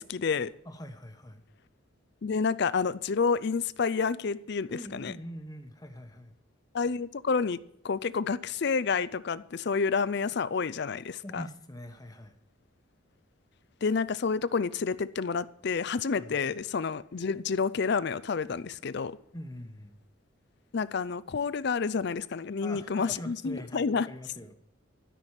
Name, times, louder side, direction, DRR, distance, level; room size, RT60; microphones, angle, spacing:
voice 1, 0.0-0.5 2.2-5.1 6.7-7.6 7.8-11.4 13.8-19.2 20.7-24.1, left 5 dB, 55° left, 17 dB, 0.5 m, -29 dB
voice 2, 0.6-1.4 4.7-6.4 11.2-12.4 16.2-16.4 19.3-20.0 22.6-24.5, equal, 20° left, 6 dB, 1.1 m, -43 dB
13.0 x 6.1 x 9.0 m, 0.71 s
head